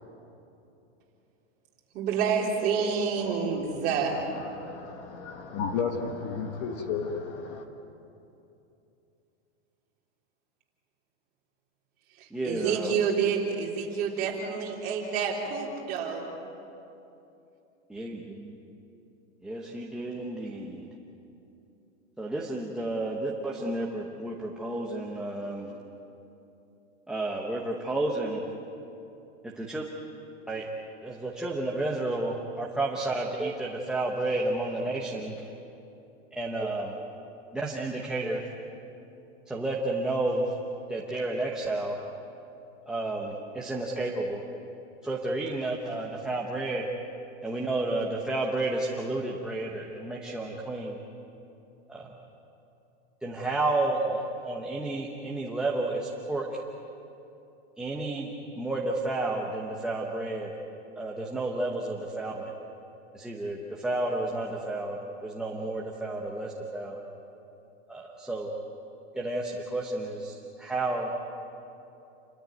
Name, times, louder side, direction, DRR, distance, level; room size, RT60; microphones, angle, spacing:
voice 1, 1.9-4.2 12.2-16.3, right 6 dB, 25° right, 3.7 m, -28 dB
voice 2, 4.3-7.6, left 5 dB, 30° left, 1.4 m, -33 dB
voice 3, 12.3-12.9 17.9-18.6 19.4-20.9 22.2-25.7 27.1-28.4 29.4-29.8 30.5-30.7 31.0-35.5 36.4-37.0 37.5-38.4 39.5-40.5 40.9-42.0 42.9-44.4 45.0-46.9 47.4-51.0 51.9-52.1 53.2-56.6 57.8-60.5 61.0-62.5 63.1-67.0 67.9-68.5 69.1-71.1, right 2 dB, ahead, 0.9 m, -31 dB
29.0 x 13.5 x 9.4 m
supercardioid pair, 170°, 35 cm